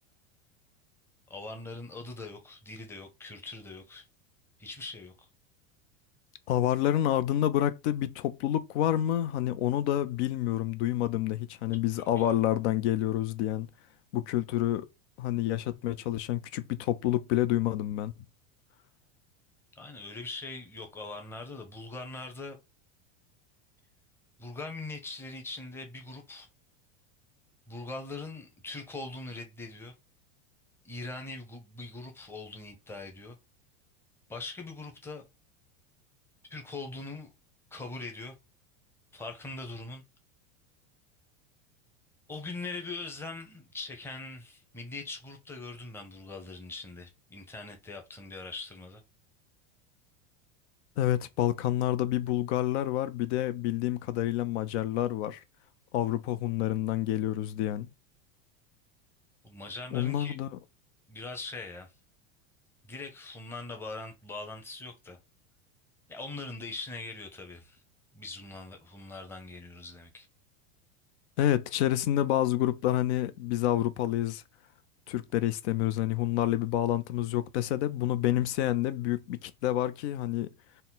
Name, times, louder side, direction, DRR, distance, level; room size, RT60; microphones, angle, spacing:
voice 1, 1.3-4.1 4.6-5.1 12.2-12.4 19.8-22.6 24.4-26.5 27.7-29.9 30.8-33.4 34.3-35.2 36.5-37.3 37.7-38.3 39.1-40.0 42.3-49.0 59.4-60.4 61.1-61.9 62.8-65.2 66.1-67.8 68.1-70.3, left 3 dB, 5° left, 0.7 m, -41 dB
voice 2, 6.5-13.7 14.1-14.9 15.2-18.1 51.0-55.4 55.9-57.9 59.9-60.5 71.4-74.4 75.1-80.5, left 12 dB, 65° left, 0.5 m, -28 dB
4.3 x 2.1 x 3.8 m
supercardioid pair, 140°, 37 cm